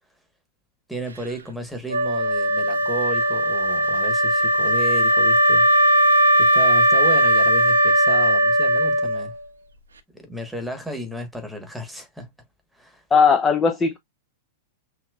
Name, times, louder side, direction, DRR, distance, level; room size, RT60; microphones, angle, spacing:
voice 1, 0.9-5.7 6.4-9.3 10.1-12.3 12.7-13.0, equal, ahead, 1.2 m, -33 dB
Wind instrument woodwind instrument, 1.9-9.5, right 1 dB, 75° right, 0.6 m, -18 dB
voice 2, 13.1-14.0, left 5 dB, 20° left, 0.5 m, -17 dB
5.8 x 2.6 x 2.3 m
figure-of-eight pair, 95°, 0 cm